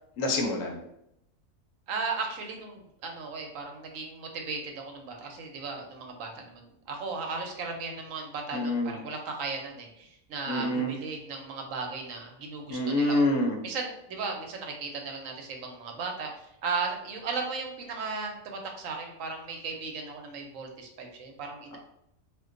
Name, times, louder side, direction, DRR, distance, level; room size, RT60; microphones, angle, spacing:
voice 1, 0.2-0.8 8.5-9.0 10.5-10.9 12.7-13.6, left 1 dB, 75° left, 2 dB, 1.0 m, -26 dB
voice 2, 1.9-13.2 13.6-21.8, right 4 dB, 75° right, 2 dB, 1.0 m, -36 dB
2.5 x 2.2 x 3.6 m, 0.79 s
omnidirectional pair, 1.4 m